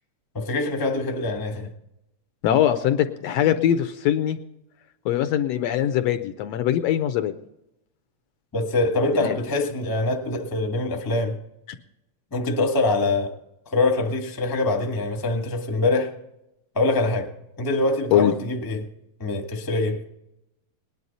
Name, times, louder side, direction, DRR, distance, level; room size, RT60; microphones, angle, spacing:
voice 1, 0.3-1.7 8.5-11.4 12.3-13.3 13.6-16.1 16.7-17.3 17.6-18.8 19.2-20.0, left 2 dB, 15° left, 3 dB, 0.6 m, -24 dB
voice 2, 2.4-4.4 5.0-7.3 9.2-9.4 18.1-18.3, left 11 dB, 75° left, 9 dB, 1.6 m, -22 dB
19.0 x 11.0 x 4.1 m, 0.86 s
omnidirectional pair, 3.3 m